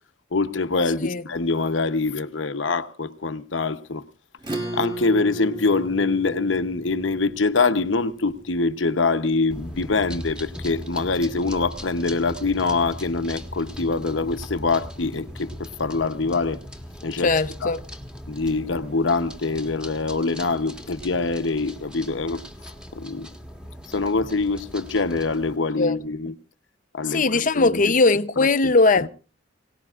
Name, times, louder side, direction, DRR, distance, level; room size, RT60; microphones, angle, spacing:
voice 1, 0.3-4.0 4.7-16.6 17.0-17.3 17.6-17.7 18.3-22.4 22.9-23.3 23.9-26.3 26.9-27.9 28.4-29.1, left 3 dB, 80° left, 0.9 m, -24 dB
Acoustic guitar / Strum, 4.4-9.3, right 1 dB, 25° right, 2.5 m, -35 dB
sound 1, 9.5-25.6, equal, 5° right, 1.6 m, -39 dB
voice 2, 17.2-17.8 25.8-26.0 27.1-29.1, left 3 dB, 45° left, 0.7 m, -19 dB
25.0 x 18.0 x 2.5 m
head